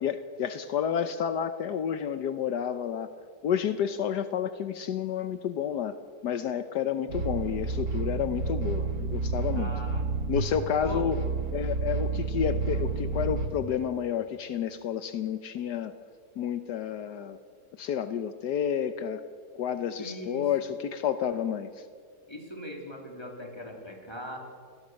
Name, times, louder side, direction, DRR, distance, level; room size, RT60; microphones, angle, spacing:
voice 1, 0.0-3.1 3.4-6.0 6.2-9.7 10.3-11.2 11.5-15.9 16.4-17.4 17.8-19.3 19.5-21.9, left 8 dB, 75° left, 10 dB, 1.4 m, -30 dB
sound 1, 7.1-13.5, right 4 dB, 80° right, 2.7 m, -30 dB
voice 2, 9.5-10.0 10.8-11.1 20.0-20.5 22.3-24.4, left 1 dB, 15° left, 1 dB, 3.8 m, -40 dB
27.5 x 20.0 x 6.5 m, 2.1 s
omnidirectional pair, 1.8 m